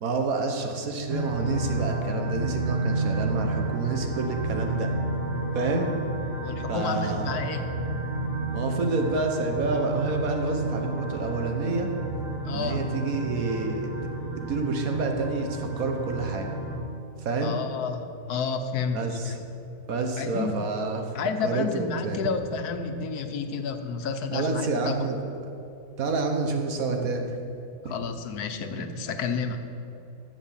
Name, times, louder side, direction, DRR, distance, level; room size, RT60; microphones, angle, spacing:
voice 1, 0.0-4.9 5.5-5.9 6.7-7.6 8.5-11.9 12.5-13.9 14.4-16.5 17.2-17.6 18.9-19.4 19.9-21.1 21.4-22.3 24.3-25.3 26.0-27.4 27.8-28.0, right 3 dB, 65° right, 4 dB, 1.6 m, -28 dB
sound 1, 1.1-16.8, right 2 dB, 40° right, 1.7 m, -31 dB
voice 2, 6.4-7.6 12.4-12.8 17.4-19.3 20.2-20.5 21.1-24.9 27.8-29.6, left 5 dB, 85° left, 7 dB, 1.4 m, -30 dB
12.5 x 7.3 x 7.3 m, 2.7 s
omnidirectional pair, 1.6 m